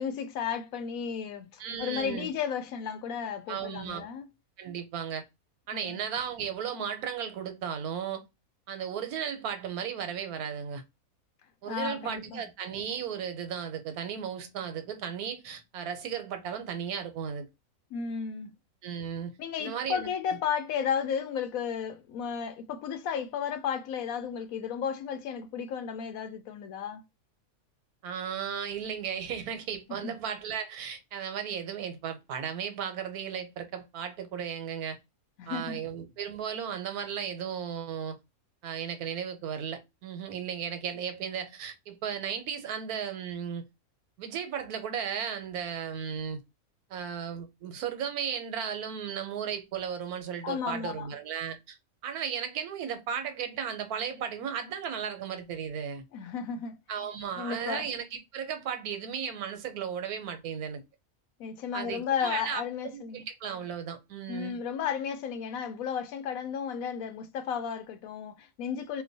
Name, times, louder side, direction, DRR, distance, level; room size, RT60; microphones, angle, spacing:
voice 1, 0.0-4.3 5.7-6.0 11.7-12.4 17.9-18.5 19.4-27.0 29.9-30.2 35.4-35.8 50.4-51.1 56.1-56.8 57.4-57.9 61.4-63.2 64.3-69.0, left 7 dB, 75° left, 1.0 m, -33 dB
voice 2, 1.6-2.3 3.5-4.0 4.6-5.2 5.7-8.2 8.7-10.8 11.6-17.5 18.8-19.3 19.6-20.1 28.0-35.0 35.5-38.2 38.6-43.6 44.2-46.4 46.9-51.8 52.0-56.0 56.9-60.8 61.7-64.6, right 8 dB, 90° right, 1.2 m, -35 dB
2.9 x 2.1 x 3.9 m
omnidirectional pair, 1.5 m